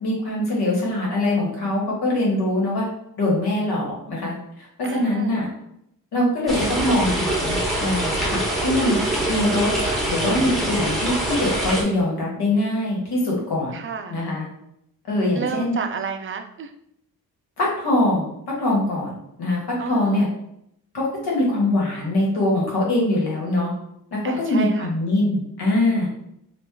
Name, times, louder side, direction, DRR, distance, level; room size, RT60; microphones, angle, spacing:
voice 1, 0.0-2.8 3.2-4.4 4.9-5.5 6.1-8.9 9.3-9.7 10.1-13.7 14.1-14.5 15.1-15.7 17.6-18.3 18.6-19.1 19.4-20.3 20.9-23.7 24.1-26.1, left 1 dB, 90° left, -3 dB, 1.3 m, -22 dB
voice 2, 4.8-5.4 13.7-14.2 15.3-16.7 19.8-20.3 24.2-24.9, right 5 dB, 35° right, 6 dB, 0.4 m, -31 dB
sound 1, 6.5-11.8, right 1 dB, ahead, 0.8 m, -24 dB
3.0 x 2.4 x 3.6 m, 0.77 s
cardioid pair, 100°, 37 cm